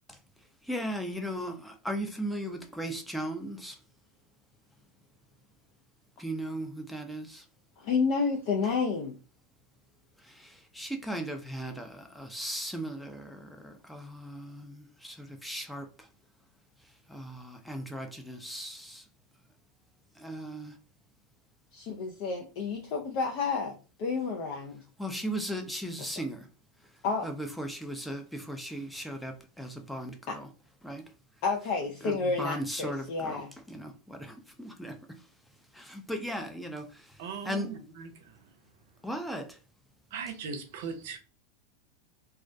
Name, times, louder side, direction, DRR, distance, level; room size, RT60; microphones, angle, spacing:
voice 1, 0.6-3.8 6.2-7.5 10.2-16.1 17.1-19.0 20.2-20.8 25.0-26.5 27.2-30.5 30.8-31.1 32.0-35.2 35.7-37.7 39.0-39.6, equal, 5° left, 0.4 m, -37 dB
voice 2, 7.8-9.1 21.7-24.8 27.0-27.3 30.3-30.4 31.4-33.5, left 4 dB, 60° left, 0.4 m, -30 dB
voice 3, 37.2-38.4 40.1-41.2, right 6 dB, 70° right, 0.5 m, -39 dB
2.3 x 2.1 x 2.6 m
hypercardioid pair, 110°, 0 cm